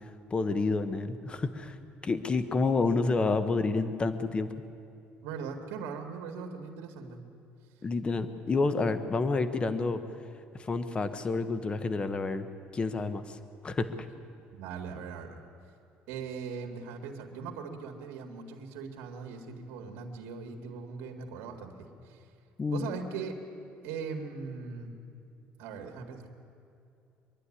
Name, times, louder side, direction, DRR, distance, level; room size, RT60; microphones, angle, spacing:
voice 1, 0.3-1.8 2.0-4.5 7.8-10.0 10.5-12.5 12.7-13.4 13.6-13.9 22.6-22.9, left 3 dB, 25° left, 11 dB, 1.1 m, -29 dB
voice 2, 5.2-7.2 14.5-15.4 16.1-22.3 22.7-23.3 23.8-24.9 25.6-26.3, right 5 dB, 85° right, 3 dB, 2.1 m, -40 dB
24.5 x 11.5 x 10.0 m, 2.6 s
cardioid pair, 125°, 4 cm